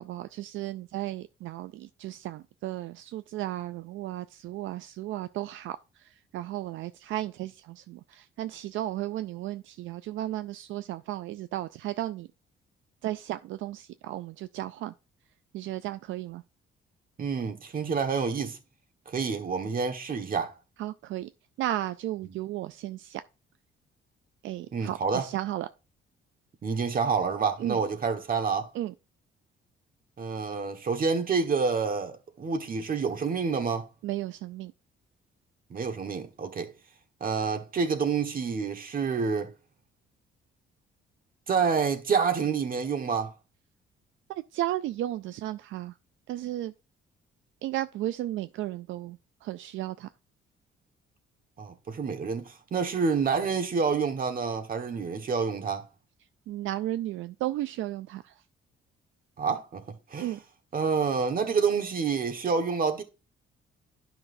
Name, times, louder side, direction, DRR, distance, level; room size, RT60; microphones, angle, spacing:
voice 1, 0.0-12.3 13.0-14.9 15.5-16.4 20.8-21.3 21.6-23.2 24.4-25.7 27.6-27.8 28.7-28.9 34.0-34.7 44.3-45.9 46.3-46.7 47.6-50.1 56.5-58.3 60.2-60.4, right 14 dB, 80° right, 0.4 m, -34 dB
voice 2, 17.2-18.6 19.1-20.5 24.7-25.3 26.6-28.7 30.2-33.9 35.7-36.7 37.2-39.5 41.5-43.3 51.6-55.9 59.4-59.8 60.1-60.4 60.7-63.0, right 5 dB, 45° right, 1.4 m, -28 dB
11.0 x 5.9 x 2.6 m
cardioid pair, 90°, 20 cm